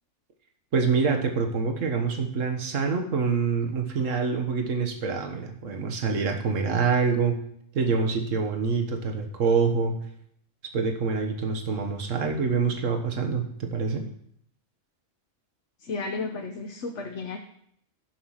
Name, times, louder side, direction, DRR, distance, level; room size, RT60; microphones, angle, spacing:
voice 1, 0.7-7.4 7.7-10.0 10.7-14.1, right 5 dB, 85° right, 4 dB, 1.6 m, -26 dB
voice 2, 15.8-17.4, left 3 dB, 70° left, 3 dB, 1.2 m, -33 dB
11.0 x 5.7 x 6.3 m, 0.68 s
omnidirectional pair, 1.3 m